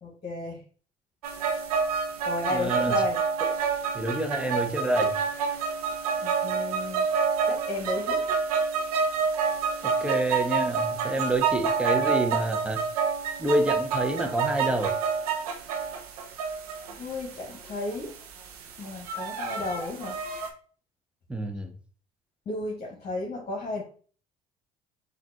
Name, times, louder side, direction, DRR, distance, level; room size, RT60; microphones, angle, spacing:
voice 1, 0.0-0.6 2.2-3.2 6.2-7.1 7.5-8.4 17.0-18.1 18.8-20.2 22.4-23.8, left 2 dB, 40° left, -2 dB, 1.4 m, -33 dB
sound 1, 1.2-20.5, right 6 dB, 90° right, 0.6 m, -28 dB
voice 2, 2.5-3.0 3.9-5.2 9.8-12.8 13.4-15.0 21.3-21.7, right 1 dB, 5° right, 4 dB, 0.9 m, -28 dB
5.7 x 2.5 x 2.8 m, 0.42 s
hypercardioid pair, 65°, 19 cm